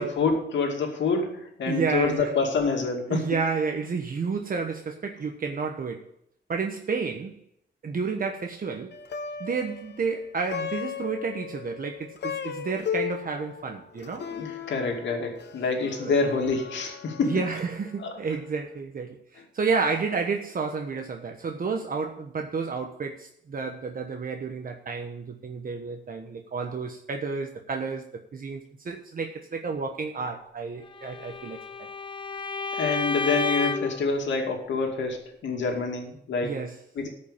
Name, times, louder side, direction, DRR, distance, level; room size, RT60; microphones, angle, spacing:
voice 1, 0.0-3.4 14.2-17.6 18.0-18.2 32.8-36.6 36.9-37.1, left 4 dB, 85° left, 2 dB, 2.4 m, -27 dB
voice 2, 1.7-2.3 3.1-6.1 6.5-7.4 7.8-8.9 9.4-14.3 16.0-16.2 17.2-28.0 28.3-31.9 36.4-36.8, right 5 dB, 50° right, 4 dB, 1.1 m, -31 dB
Plucked string instrument, 8.9-18.3, left 8 dB, 70° left, 1.0 m, -37 dB
Bowed string instrument, 31.0-34.0, left 4 dB, 25° left, 0.9 m, -31 dB
14.0 x 5.4 x 7.2 m, 0.72 s
cardioid pair, 105°, 19 cm